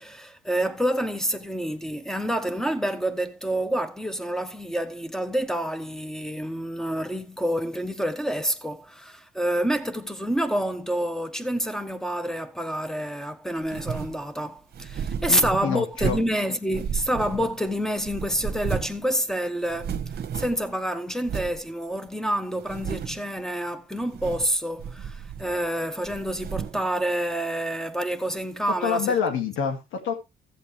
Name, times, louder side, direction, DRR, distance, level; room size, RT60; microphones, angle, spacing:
voice 1, 0.0-19.9 20.3-29.1, equal, ahead, 1.1 m, -28 dB
sound 1, 13.6-14.2 14.7-16.4 16.7-17.7 18.0-19.0 19.3-19.4 19.7-20.7 21.2-21.6 22.1-22.2 22.6-23.3 24.0-24.5 24.8-25.7 26.0-26.9, right 7 dB, 55° right, 1.2 m, -33 dB
voice 2, 15.3-16.2 28.8-30.1, left 7 dB, 85° left, 2.1 m, -27 dB
14.5 x 7.7 x 3.1 m
cardioid pair, 90°, 20 cm